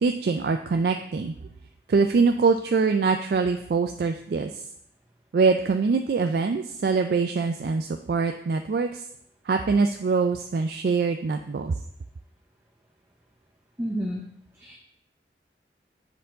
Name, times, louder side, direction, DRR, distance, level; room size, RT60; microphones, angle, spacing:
voice 1, 0.0-1.3 1.9-4.5 5.3-9.0 9.5-11.7, right 4 dB, 60° right, 6 dB, 0.3 m, -23 dB
voice 2, 13.8-14.2 14.6-14.8, equal, 15° right, -1 dB, 0.6 m, -30 dB
7.6 x 4.5 x 3.9 m, 0.71 s
head